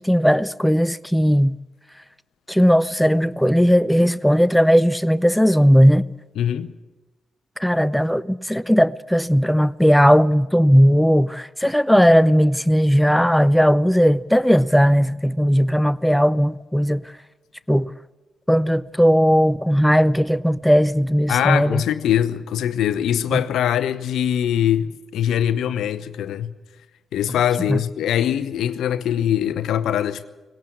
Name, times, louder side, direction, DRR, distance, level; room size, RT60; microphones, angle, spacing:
voice 1, 0.0-1.6 2.5-6.0 7.6-17.1 17.7-17.9 18.5-21.8 27.7-27.8, equal, 5° left, 0.7 m, -17 dB
voice 2, 6.4-6.7 21.3-26.5 27.1-30.3, left 10 dB, 70° left, 0.8 m, -22 dB
19.0 x 18.0 x 8.6 m
hypercardioid pair, 40°, 0 cm